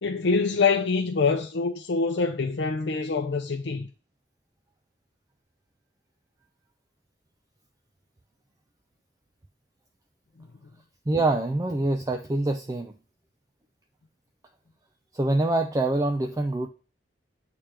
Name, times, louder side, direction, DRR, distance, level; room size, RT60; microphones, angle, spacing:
voice 1, 0.0-3.9, left 4 dB, 75° left, 0.6 m, -25 dB
voice 2, 11.1-12.9 15.1-16.7, right 2 dB, 20° right, 0.3 m, -25 dB
8.7 x 3.4 x 3.3 m
head